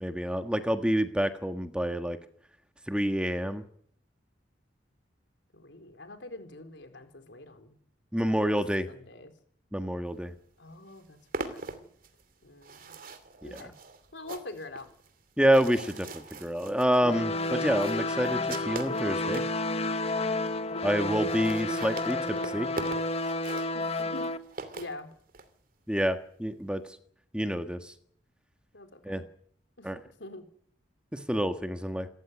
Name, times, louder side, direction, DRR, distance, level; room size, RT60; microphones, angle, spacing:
voice 1, 0.0-2.2 2.9-3.6 8.1-8.9 9.7-10.3 13.4-13.5 15.4-19.4 20.8-22.7 25.9-26.8 27.3-27.9 29.0-29.2 29.8-30.0 31.1-32.1, equal, 5° right, 8 dB, 1.5 m, -28 dB
voice 2, 5.5-7.8 8.3-8.4 8.9-9.3 10.6-11.9 12.4-12.9 13.4-13.7 14.1-14.9 23.7-24.3 24.8-25.1 28.7-29.3 29.8-30.4, left 2 dB, 80° left, 7 dB, 4.2 m, -45 dB
sound 1, 10.4-10.5 10.7-19.6 20.2-20.3 20.5-20.6 20.8-20.9 21.1-25.5, right 3 dB, 50° right, 2.8 m, -42 dB
sound 2, 17.0-24.4, left 2 dB, 35° left, 1.3 m, -31 dB
28.5 x 14.5 x 9.8 m, 0.65 s
head